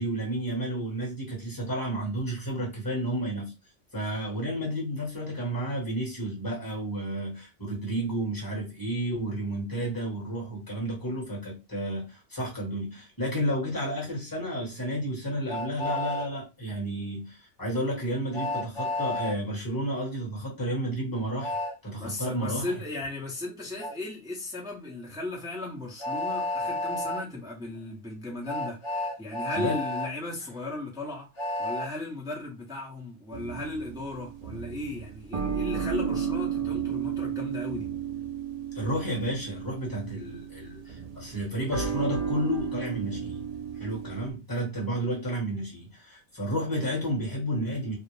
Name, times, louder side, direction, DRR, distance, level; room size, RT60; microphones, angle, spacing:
voice 1, 0.0-3.5 3.9-21.6 21.8-22.7 29.5-29.8 38.7-43.4 43.7-48.0, right 1 dB, 20° left, 1.1 m, -31 dB
Train, 15.5-16.3 18.3-19.4 21.4-21.7 23.8-23.9 26.0-27.2 28.4-30.1 31.4-31.9, left 2 dB, 35° left, 0.4 m, -31 dB
voice 2, 22.0-28.8 29.2-31.3 31.6-37.9, left 2 dB, 5° right, 0.6 m, -36 dB
sound 1, 33.3-44.3, right 7 dB, 80° right, 0.3 m, -33 dB
2.5 x 2.0 x 3.1 m
omnidirectional pair, 1.3 m